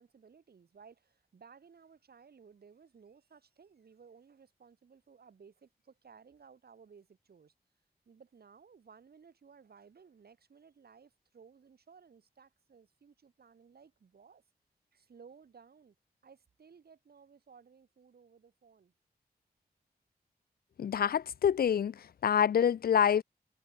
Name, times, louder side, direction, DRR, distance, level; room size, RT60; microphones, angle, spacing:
voice 1, 0.0-7.5 8.1-14.4 14.9-16.0 16.2-18.9, right 6 dB, 75° right, 5.9 m, -58 dB
voice 2, 20.8-23.2, left 8 dB, 70° left, 0.4 m, -27 dB
wide cardioid pair, 140°, 16 cm